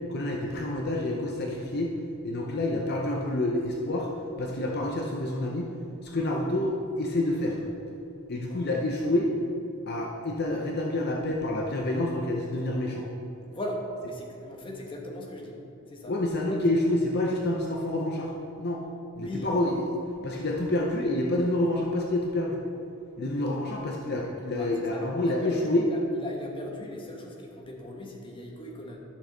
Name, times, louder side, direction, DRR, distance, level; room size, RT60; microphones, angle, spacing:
voice 1, 0.1-2.0 2.2-4.1 4.4-5.7 6.0-7.6 8.3-9.3 9.9-13.0 16.1-18.8 19.2-22.6 23.2-25.9, left 1 dB, 50° left, -1 dB, 0.7 m, -28 dB
voice 2, 13.5-15.5 15.9-16.1 16.5-16.6 19.2-19.5 24.6-29.0, left 1 dB, 25° left, -1 dB, 1.2 m, -38 dB
11.5 x 6.3 x 3.9 m, 2.9 s
head